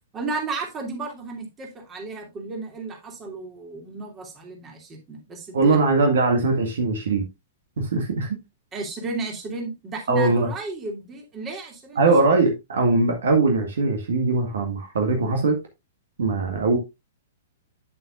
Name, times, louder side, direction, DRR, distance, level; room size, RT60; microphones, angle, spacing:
voice 1, 0.1-5.8 8.7-12.1, right 3 dB, 20° right, 2.7 m, -33 dB
voice 2, 5.5-7.2 7.8-8.3 10.1-10.5 12.0-15.6 16.2-16.8, right 3 dB, 60° right, 1.8 m, -21 dB
9.0 x 7.6 x 2.5 m
figure-of-eight pair, 110°, 0 cm